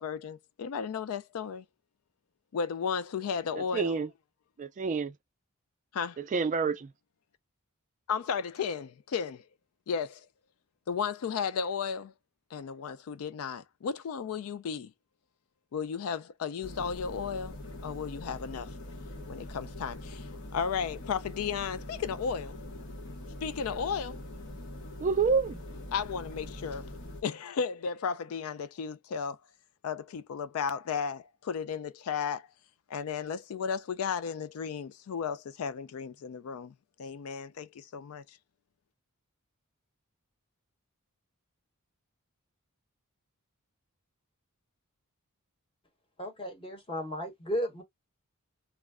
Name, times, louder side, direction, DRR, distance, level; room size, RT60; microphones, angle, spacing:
voice 1, 0.0-1.6 2.5-4.0 5.9-6.2 8.1-9.4 9.9-10.3 10.9-12.1 12.5-14.9 15.7-17.5 17.8-18.7 19.3-22.6 23.4-24.2 25.9-26.9 27.2-29.4 29.8-32.5 32.9-36.7 37.0-38.4, left 6 dB, 75° left, 0.4 m, -34 dB
voice 2, 3.6-4.1 4.6-5.2 6.2-6.9 25.0-25.6, right 5 dB, 35° right, 0.3 m, -28 dB
sound 1, 16.6-27.2, left 1 dB, 60° left, 0.8 m, -43 dB
voice 3, 46.2-47.8, equal, 25° left, 1.0 m, -34 dB
2.3 x 2.1 x 3.4 m
head